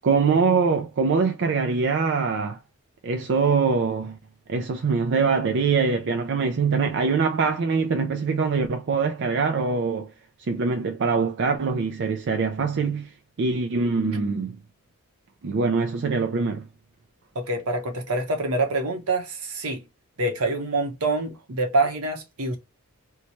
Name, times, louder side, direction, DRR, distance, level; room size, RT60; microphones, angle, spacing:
voice 1, 0.0-2.6 3.0-4.2 4.5-10.1 10.4-14.6 15.4-16.7, right 5 dB, 55° right, 0.4 m, -23 dB
voice 2, 17.3-19.8 20.2-22.6, right 2 dB, 75° right, 1.0 m, -26 dB
3.0 x 2.2 x 4.1 m
head